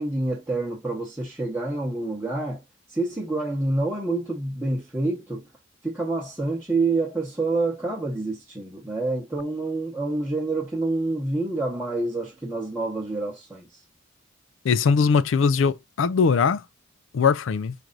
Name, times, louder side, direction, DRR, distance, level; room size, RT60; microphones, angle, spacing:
voice 1, 0.0-2.6 2.9-5.5 5.8-13.7, right 2 dB, 10° right, 0.9 m, -27 dB
voice 2, 14.6-16.6 17.1-17.7, left 5 dB, 75° left, 0.4 m, -20 dB
4.6 x 2.5 x 3.8 m
head